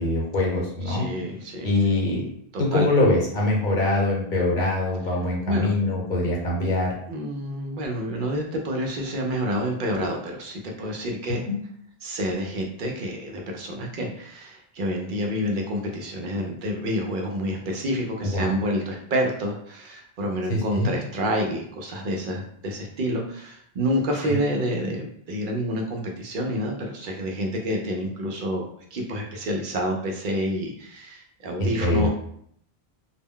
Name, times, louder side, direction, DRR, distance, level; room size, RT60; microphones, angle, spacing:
voice 1, 0.0-1.1 1.6-2.2 2.6-6.9 11.4-11.5 18.2-18.5 20.5-20.9 24.2-24.3 31.6-32.1, left 2 dB, 50° left, -3 dB, 0.9 m, -23 dB
voice 2, 0.9-1.7 2.5-2.9 5.5-5.7 7.1-11.4 12.0-32.1, equal, 60° right, 1 dB, 0.6 m, -28 dB
2.2 x 2.1 x 3.5 m, 0.65 s
omnidirectional pair, 1.1 m